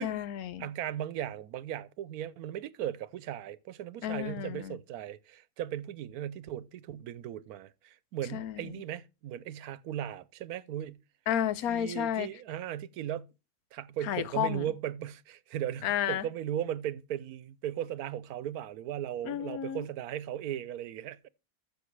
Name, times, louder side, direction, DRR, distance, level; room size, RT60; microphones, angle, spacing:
voice 1, 0.0-0.7 4.0-4.8 8.3-8.8 11.3-12.3 14.0-14.7 15.8-16.3 19.2-19.8, left 10 dB, 80° left, 1.2 m, -32 dB
voice 2, 0.6-11.0 11.7-13.3 13.7-21.3, right 11 dB, 85° right, 1.2 m, -37 dB
14.5 x 6.8 x 3.2 m
omnidirectional pair, 1.5 m